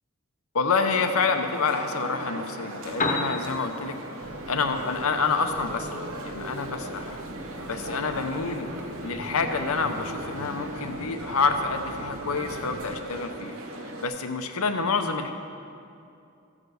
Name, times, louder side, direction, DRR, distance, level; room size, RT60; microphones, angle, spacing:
voice 1, 0.5-3.9 4.5-5.9 6.2-7.2 7.7-8.7 9.0-13.5 14.0-15.3, left 4 dB, 75° left, 7 dB, 0.8 m, -27 dB
sound 1, 0.8-14.1, right 1 dB, 70° right, 0.9 m, -38 dB
Piano, 2.7-10.8, left 2 dB, 35° left, 1.0 m, -38 dB
sound 2, 4.2-13.0, right 1 dB, 35° right, 0.7 m, -41 dB
14.0 x 4.9 x 6.4 m, 2.5 s
head